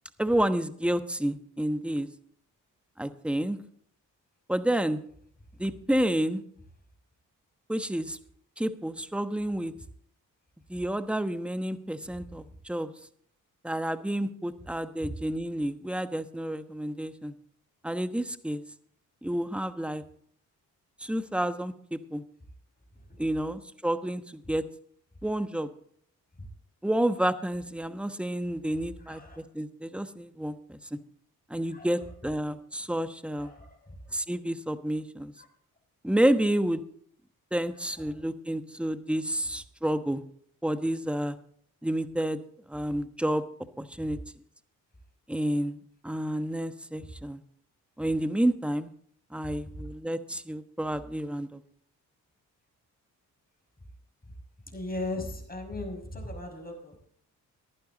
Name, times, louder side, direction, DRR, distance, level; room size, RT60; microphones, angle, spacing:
voice 1, 0.2-2.1 3.0-3.6 4.5-5.0 5.6-6.4 7.7-8.2 8.6-9.7 10.7-12.9 13.6-17.3 17.8-18.6 19.2-20.0 21.0-22.2 23.2-24.6 25.2-25.7 26.8-31.0 31.5-33.5 34.1-35.3 36.0-36.8 37.5-40.2 40.6-41.4 41.8-42.4 42.7-43.4 43.8-44.2 45.3-47.4 48.0-48.9 49.3-51.6, right 1 dB, 5° right, 10 dB, 1.1 m, -30 dB
voice 2, 29.0-29.4 31.7-31.9 33.4-34.1 35.4-35.5 38.0-38.1 44.0-44.1 54.7-57.0, left 2 dB, 25° left, 2 dB, 5.9 m, -38 dB
15.5 x 11.5 x 4.0 m, 0.62 s
supercardioid pair, 50°, 38 cm